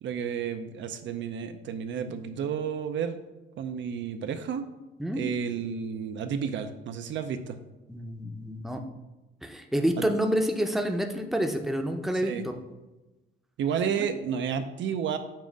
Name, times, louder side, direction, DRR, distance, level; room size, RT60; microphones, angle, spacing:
voice 1, 0.0-3.2 3.6-4.7 5.1-7.6 10.0-10.1 12.2-12.5 13.6-15.2, right 7 dB, 70° right, 8 dB, 0.5 m, -31 dB
voice 2, 7.9-8.8 9.4-12.5 14.0-14.1, equal, ahead, 4 dB, 0.6 m, -28 dB
7.3 x 2.5 x 5.1 m, 1.1 s
cardioid pair, 90°, 20 cm